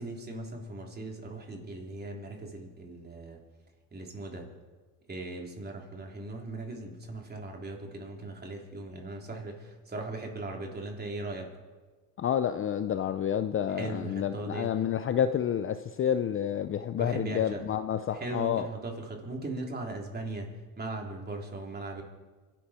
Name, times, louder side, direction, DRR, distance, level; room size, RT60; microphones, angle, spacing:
voice 1, 0.0-3.4 3.9-4.5 5.1-11.5 13.7-14.7 17.0-17.7 18.1-22.0, right 2 dB, 20° right, 1 dB, 3.5 m, -39 dB
voice 2, 12.2-18.7, left 9 dB, 30° left, 10 dB, 0.6 m, -29 dB
24.5 x 11.5 x 4.4 m, 1.3 s
supercardioid pair, 105°, 43 cm